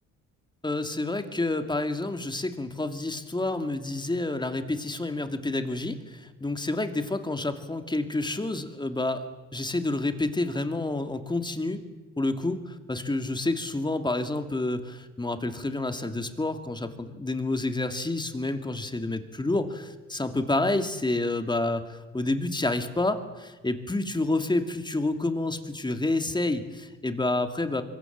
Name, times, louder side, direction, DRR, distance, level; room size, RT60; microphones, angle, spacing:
voice 1, 0.6-9.2 9.5-11.8 12.2-27.8, left 2 dB, 15° left, 7 dB, 2.6 m, -29 dB
25.5 x 23.0 x 7.5 m, 1.2 s
cardioid pair, 90°, 30 cm